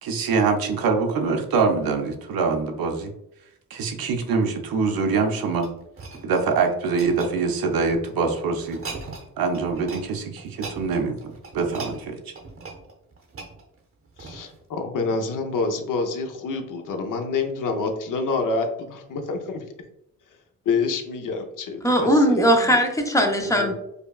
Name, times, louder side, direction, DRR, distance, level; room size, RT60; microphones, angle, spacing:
voice 1, 0.0-3.1 3.7-5.7 6.2-8.8 9.4-12.2, right 4 dB, 75° right, 4 dB, 0.6 m, -24 dB
sound 1, 5.0-8.1 8.6-9.3 9.5-10.1 10.4-14.6 15.2-15.3, right 3 dB, 40° right, 0.7 m, -40 dB
voice 2, 14.2-19.6 20.7-22.8 23.4-23.7, left 4 dB, 60° left, 5 dB, 0.6 m, -27 dB
voice 3, 21.8-23.7, equal, 10° left, 2 dB, 0.4 m, -19 dB
5.1 x 2.2 x 2.3 m, 0.82 s
wide cardioid pair, 135°, 36 cm